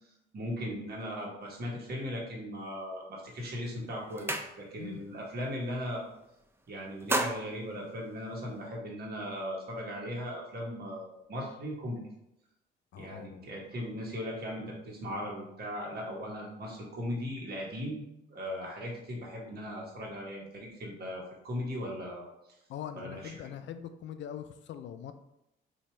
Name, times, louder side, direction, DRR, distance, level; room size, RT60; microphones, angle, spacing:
voice 1, 0.3-6.0 6.7-12.0 13.0-22.3 22.9-23.4, equal, 50° right, -2 dB, 1.3 m, -38 dB
sound 1, 3.3-3.5 3.8-5.0 5.3-5.6 5.9-6.5 6.8-8.7, right 1 dB, 10° right, 0.4 m, -35 dB
voice 2, 4.7-5.0 12.9-13.5 22.7-25.1, left 9 dB, 70° left, 9 dB, 0.4 m, -42 dB
2.9 x 2.7 x 4.3 m, 0.84 s
cardioid pair, 90°, 20 cm